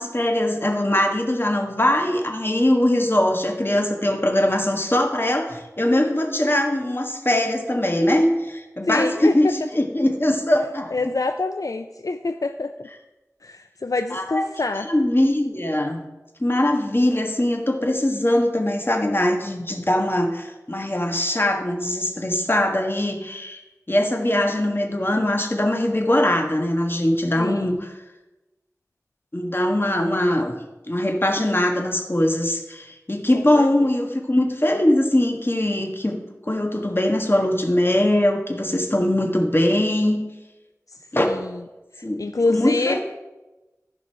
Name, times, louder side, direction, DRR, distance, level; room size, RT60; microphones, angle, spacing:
voice 1, 0.0-10.9 14.1-14.5 14.9-16.0 16.4-23.6 23.9-27.9 29.3-30.5 30.9-36.1 36.5-40.2 41.1-41.3 42.0-42.2 42.5-43.0, left 1 dB, 40° left, 2 dB, 1.5 m, -21 dB
voice 2, 8.8-9.3 10.9-12.9 13.4-14.9 27.4-27.8 33.3-33.7 41.2-41.5 42.0-43.0, left 3 dB, 75° left, 8 dB, 0.4 m, -26 dB
14.0 x 5.3 x 4.7 m, 1.1 s
wide cardioid pair, 40°, 6 cm